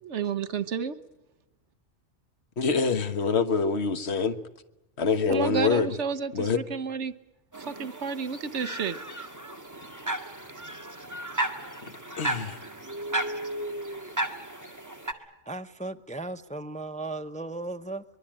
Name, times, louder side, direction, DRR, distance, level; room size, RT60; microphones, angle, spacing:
voice 1, 0.0-1.0 5.3-7.1 7.6-9.0, right 6 dB, 75° right, 1.4 m, -31 dB
voice 2, 2.6-4.4 5.0-5.9 6.3-6.6 12.2-12.6, left 5 dB, 65° left, 1.6 m, -25 dB
sound 1, 7.5-15.1, right 1 dB, 15° right, 1.8 m, -34 dB
voice 3, 15.4-18.0, right 2 dB, 5° left, 0.8 m, -36 dB
24.0 x 22.5 x 8.9 m
omnidirectional pair, 1.2 m